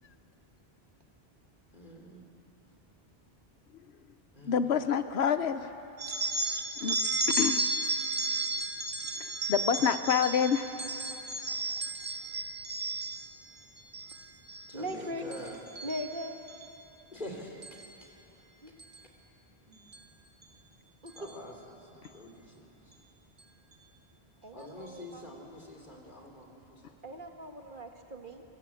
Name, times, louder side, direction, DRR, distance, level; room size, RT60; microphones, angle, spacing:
voice 1, 1.7-2.2 4.3-4.6 8.1-8.2 14.7-15.6 17.1-17.6 21.1-22.7 24.5-26.9 27.6-27.8, left 1 dB, 50° left, 1 dB, 3.3 m, -46 dB
voice 2, 4.4-5.7 6.8-7.0 7.4-7.7 9.2-10.7, left 7 dB, 85° left, 10 dB, 1.1 m, -27 dB
sound 1, 6.0-13.3 13.8-14.2 14.5-14.9 15.3-16.7 17.6-17.9 18.8-19.0 19.9-20.0 20.4-20.5 21.1-21.3, right 2 dB, 90° right, 1.7 m, -33 dB
voice 3, 14.7-15.2 15.8-16.3 18.6-18.7 21.0-21.1 24.4-25.3 27.0-28.4, equal, 55° right, 4 dB, 1.8 m, -39 dB
23.5 x 22.0 x 8.5 m, 3.0 s
omnidirectional pair, 1.0 m